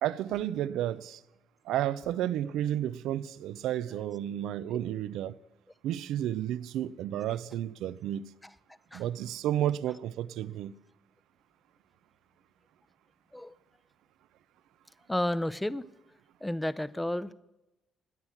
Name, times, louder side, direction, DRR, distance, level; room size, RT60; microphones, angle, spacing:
voice 1, 0.0-1.2 1.7-5.3 5.8-8.2 8.9-10.7, right 12 dB, 90° right, 0.5 m, -32 dB
voice 2, 15.1-15.8 16.4-17.3, left 1 dB, 10° left, 0.6 m, -31 dB
17.0 x 9.7 x 7.2 m
cardioid pair, 90°, 0 cm